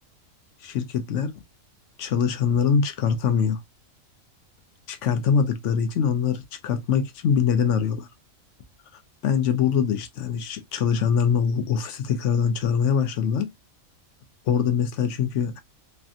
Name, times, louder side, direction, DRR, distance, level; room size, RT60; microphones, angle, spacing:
voice 1, 0.6-1.3 2.0-3.6 4.9-8.1 9.2-13.5 14.5-15.6, left 7 dB, 65° left, 0.9 m, -23 dB
3.2 x 2.6 x 2.4 m
omnidirectional pair, 1.4 m